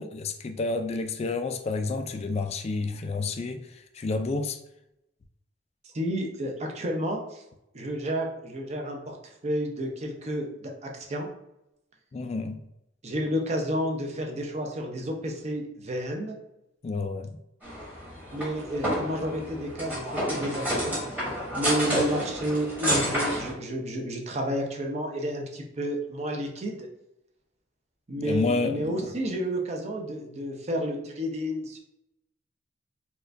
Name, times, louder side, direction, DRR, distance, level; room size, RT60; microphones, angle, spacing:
voice 1, 0.0-4.6 12.1-12.6 16.8-17.3 28.2-29.1, left 3 dB, 35° left, 8 dB, 0.3 m, -30 dB
voice 2, 5.9-7.4 7.7-9.2 9.4-11.3 13.0-16.4 18.3-21.0 21.6-26.9 28.1-31.8, equal, 35° right, 2 dB, 0.6 m, -31 dB
sound 1, 17.6-23.5, equal, 10° right, 1.1 m, -30 dB
4.3 x 2.3 x 2.5 m, 0.86 s
head